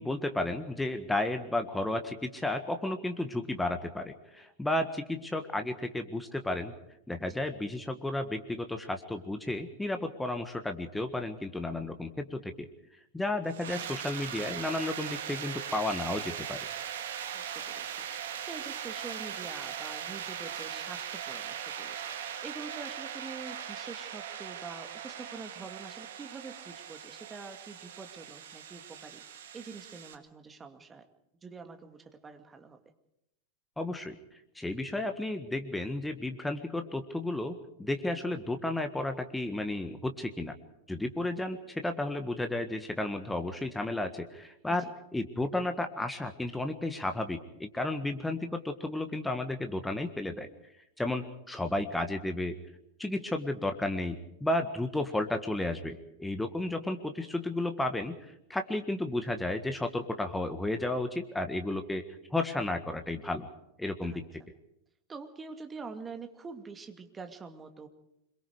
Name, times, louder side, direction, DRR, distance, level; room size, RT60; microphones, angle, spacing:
voice 1, 0.0-6.7 7.1-12.7 13.1-16.6 33.8-34.2 34.5-40.5 40.9-50.5 51.0-52.6 53.0-58.2 58.5-62.0 62.3-63.5 63.8-64.2, left 2 dB, 5° left, 7 dB, 1.7 m, -33 dB
sound 1, 13.5-30.2, right 9 dB, 60° right, 2.1 m, -40 dB
voice 2, 17.3-18.1 18.5-29.2 29.5-31.0 31.4-32.8 44.7-44.8 64.0-64.2 65.1-67.9, right 4 dB, 15° right, 7 dB, 2.4 m, -45 dB
26.0 x 23.0 x 4.9 m, 0.81 s
figure-of-eight pair, 90°, 0 cm